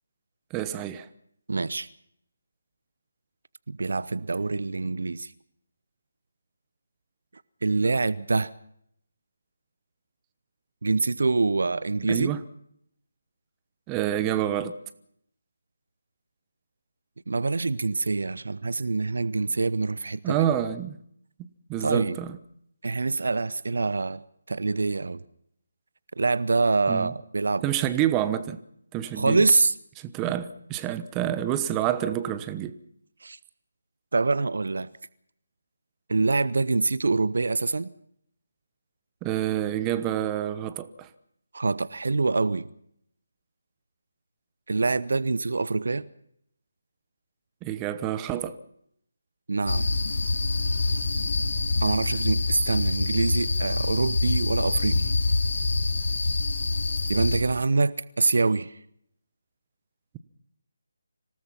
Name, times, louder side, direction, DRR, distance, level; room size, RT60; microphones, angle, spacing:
voice 1, 0.5-1.1 12.1-12.4 13.9-14.7 20.2-21.0 21.4-22.4 26.9-27.1 27.6-28.6 28.9-29.5 30.0-32.7 39.2-41.1 47.6-48.6, right 11 dB, 15° right, 1.1 m, -28 dB
voice 2, 1.5-1.9 3.7-5.3 7.6-8.5 10.8-12.3 17.3-20.4 21.8-22.2 22.8-24.2 24.5-25.2 26.2-27.6 29.2-29.7 33.2-33.4 34.1-34.9 36.1-37.9 41.5-42.7 44.7-46.1 49.5-49.9 51.8-55.0 57.1-58.7, right 3 dB, 65° right, 0.8 m, -25 dB
sound 1, 49.7-57.4, left 3 dB, 60° left, 3.0 m, -26 dB
26.0 x 18.0 x 5.8 m
figure-of-eight pair, 155°, 0 cm